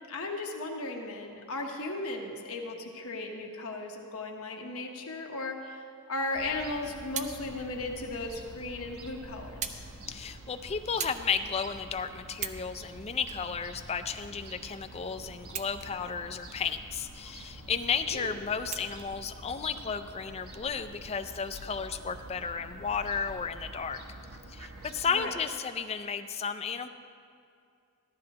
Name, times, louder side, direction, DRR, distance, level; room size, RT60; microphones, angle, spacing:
voice 1, 0.1-9.8 18.1-18.3 25.1-25.4, left 2 dB, 70° left, 2 dB, 1.0 m, -36 dB
Fowl / Gull seagull, 6.3-25.1, right 1 dB, 75° right, 1.1 m, -47 dB
sound 1, 7.0-7.4 8.3-8.4 9.6-9.9 10.2-10.4 11.0-11.3 11.8-11.9 12.3-12.7 13.2-14.2 15.4-16.1 16.5-16.6 18.7-19.1 20.0-20.1, right 7 dB, 30° right, 0.4 m, -38 dB
voice 2, 10.1-24.0 24.5-26.9, left 6 dB, 30° left, 8 dB, 0.4 m, -33 dB
14.0 x 12.0 x 2.9 m, 2.4 s
head